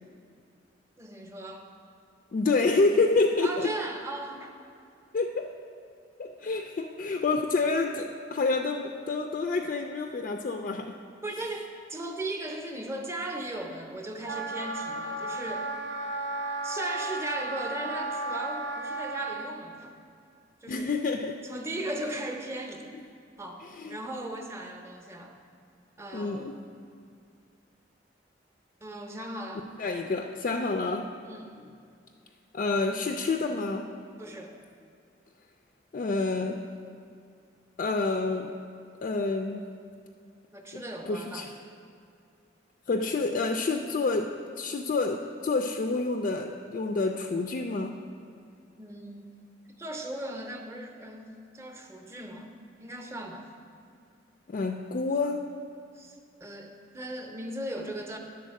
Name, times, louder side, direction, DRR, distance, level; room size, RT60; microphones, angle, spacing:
voice 1, 1.0-1.6 3.4-4.5 6.4-6.5 11.2-15.7 16.6-20.0 20.6-20.9 21.4-22.9 23.4-23.6 23.9-25.4 26.0-26.6 28.8-29.7 31.2-31.7 34.2-34.5 40.5-41.5 48.8-49.4 49.7-53.5 55.9-58.2, right 1 dB, 15° right, 3 dB, 0.7 m, -37 dB
voice 2, 2.3-3.7 5.1-5.6 6.2-11.0 20.7-21.5 23.7-24.0 26.1-26.6 29.8-31.1 32.5-33.9 35.9-36.7 37.8-38.6 39.0-39.7 40.7-41.5 42.9-48.0 54.5-55.5, left 3 dB, 45° left, 4 dB, 0.3 m, -28 dB
Wind instrument woodwind instrument, 14.2-19.4, right 2 dB, 85° right, 0.9 m, -34 dB
11.0 x 4.1 x 6.4 m, 2.4 s
head